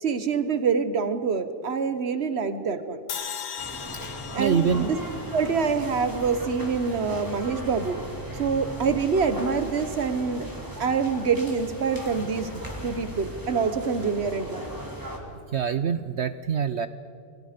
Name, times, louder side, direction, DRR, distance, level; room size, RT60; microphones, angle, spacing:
voice 1, 0.0-3.0 4.3-5.0 5.3-8.0 8.4-10.5 10.8-14.6, right 5 dB, 45° right, 11 dB, 1.2 m, -26 dB
sound 1, 3.1-6.3, left 8 dB, 70° left, 1.7 m, -38 dB
sound 2, 3.6-15.2, right 1 dB, 10° right, 2.9 m, -37 dB
voice 2, 3.9-4.8 15.5-16.9, right 7 dB, 65° right, 12 dB, 0.6 m, -26 dB
28.5 x 22.5 x 5.2 m, 2.6 s
omnidirectional pair, 1.8 m